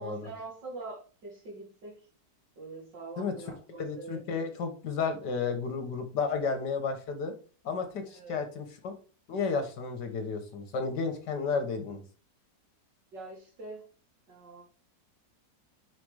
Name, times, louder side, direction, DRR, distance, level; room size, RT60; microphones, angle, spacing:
voice 1, 0.0-2.0 2.6-4.2 8.1-8.4 13.1-13.9 14.3-14.6, right 3 dB, 80° right, -1 dB, 2.9 m, -44 dB
voice 2, 3.8-7.3 7.6-8.9 9.3-12.0, left 5 dB, 75° left, 7 dB, 1.8 m, -32 dB
5.1 x 4.7 x 4.8 m, 0.38 s
omnidirectional pair, 1.9 m